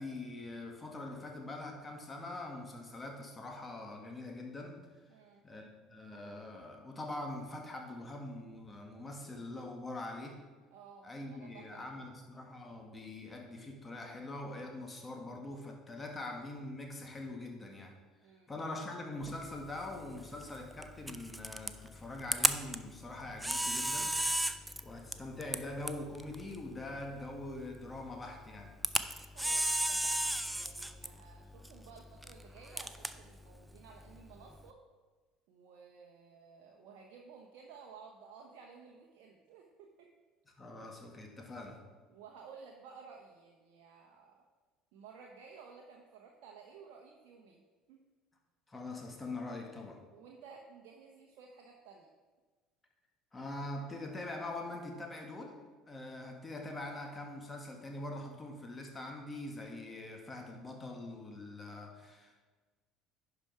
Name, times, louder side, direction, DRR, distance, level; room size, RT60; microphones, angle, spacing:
voice 1, 0.0-4.9 5.4-10.4 11.0-18.0 18.5-24.2 24.8-28.7 40.6-41.8 48.7-50.0 53.3-55.6 55.9-62.5, left 2 dB, 25° left, 2 dB, 1.8 m, -43 dB
voice 2, 5.1-5.4 10.7-12.1 18.2-18.5 29.3-34.8 35.5-40.1 42.1-44.4 44.9-47.6 47.9-48.0 50.1-52.1, right 5 dB, 65° right, 0 dB, 0.9 m, -55 dB
Camera, 19.2-34.7, right 1 dB, 5° right, 0.5 m, -37 dB
10.5 x 5.0 x 4.7 m, 1.3 s
hypercardioid pair, 65°, 0 cm